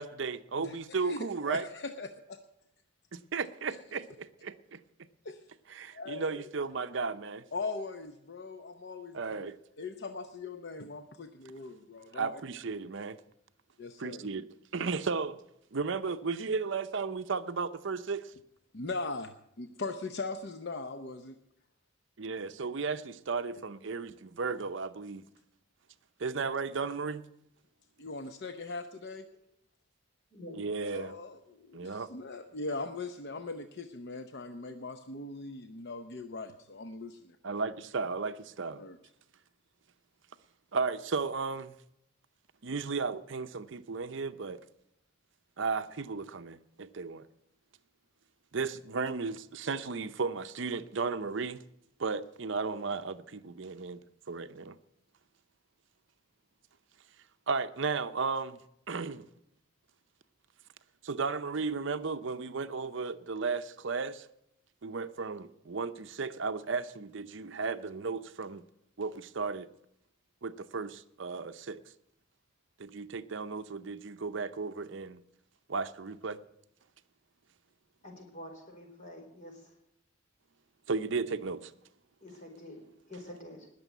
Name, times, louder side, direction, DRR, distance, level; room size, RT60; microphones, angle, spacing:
voice 1, 0.0-1.6 3.1-4.8 5.7-7.4 9.1-9.6 12.1-13.2 14.0-14.5 14.7-15.4 15.7-18.3 22.2-25.2 26.2-27.3 30.5-31.2 31.7-32.1 37.4-38.8 40.7-41.7 42.6-44.6 45.6-47.3 48.5-51.6 52.0-54.0 54.3-54.8 57.5-58.6 58.9-59.3 61.0-64.3 64.8-68.6 69.0-69.7 70.4-71.8 72.8-75.2 75.7-76.4 80.9-81.7, right 4 dB, 60° right, 0.6 m, -34 dB
voice 2, 0.6-2.4 3.7-3.8 5.2-5.4 5.9-6.3 7.5-9.4 9.8-12.4 13.8-14.3 18.7-21.4 28.0-29.3 30.8-37.4 38.8-39.0, left 3 dB, 55° left, 0.7 m, -40 dB
voice 3, 78.0-79.6 82.2-83.7, left 1 dB, 40° left, 4.1 m, -47 dB
20.0 x 6.9 x 8.2 m
head